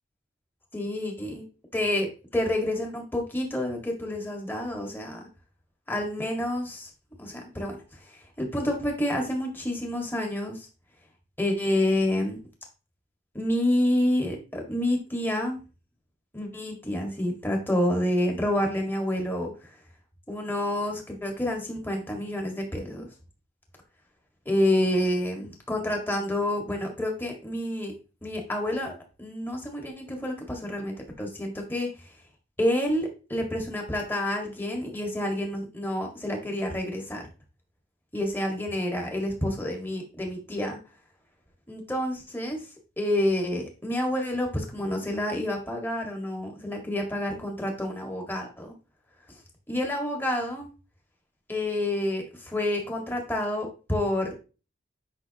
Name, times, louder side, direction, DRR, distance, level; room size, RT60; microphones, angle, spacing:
voice 1, 0.7-1.4 1.7-5.2 5.9-6.9 7.2-7.8 8.4-10.7 11.4-12.4 13.3-15.6 16.3-19.5 20.3-23.1 24.5-27.9 28.2-31.9 32.6-37.2 38.1-40.8 41.7-42.6 43.0-48.7 49.7-50.7 51.5-54.3, left 1 dB, 10° left, 1 dB, 1.8 m, -28 dB
9.8 x 5.9 x 2.9 m, 0.33 s
head